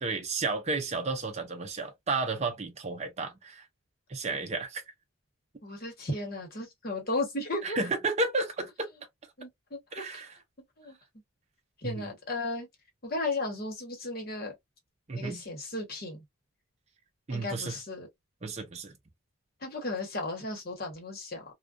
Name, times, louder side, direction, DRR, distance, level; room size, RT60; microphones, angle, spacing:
voice 1, 0.0-3.7 4.1-4.8 7.6-8.9 9.9-10.4 11.8-12.1 15.1-15.4 17.3-17.8 18.4-18.9, right 3 dB, 30° right, 0.5 m, -32 dB
voice 2, 5.6-7.8 9.4-10.0 10.8-11.0 11.8-12.7 13.0-14.5 15.1-16.2 17.3-18.1 19.6-21.4, left 2 dB, 45° left, 1.0 m, -35 dB
2.4 x 2.2 x 2.4 m
head